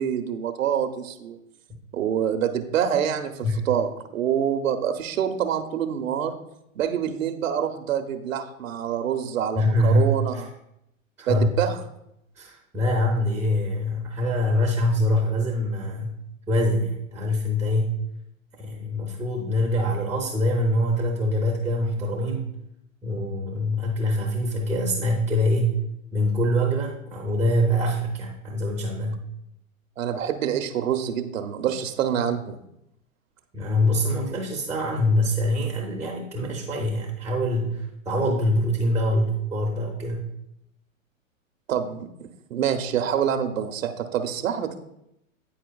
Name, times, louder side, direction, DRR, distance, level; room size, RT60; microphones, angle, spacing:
voice 1, 0.0-1.4 1.9-6.3 6.8-10.5 11.3-11.8 30.0-32.6 41.7-44.7, right 8 dB, 75° right, 6 dB, 0.8 m, -26 dB
voice 2, 9.6-10.4 11.2-11.5 12.4-16.1 16.5-17.9 18.6-22.5 23.0-25.8 26.1-29.2 33.5-40.3, left 1 dB, 5° right, 0 dB, 0.5 m, -24 dB
9.4 x 4.4 x 2.3 m, 0.81 s
hypercardioid pair, 120°, 41 cm